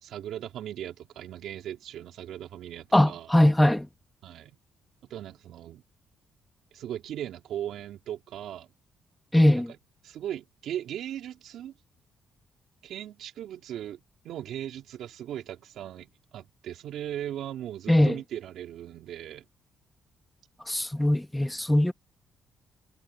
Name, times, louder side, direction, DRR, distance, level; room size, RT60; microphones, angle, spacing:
voice 1, 0.0-3.3 4.2-4.6 5.1-5.8 6.7-8.7 9.6-9.7 10.0-11.8 12.8-19.5, right 11 dB, 75° right, 3.4 m, -38 dB
voice 2, 2.9-3.9 9.3-9.7 17.9-18.2 20.7-21.9, left 1 dB, 5° left, 1.3 m, -21 dB
cardioid pair, 90°, 0 cm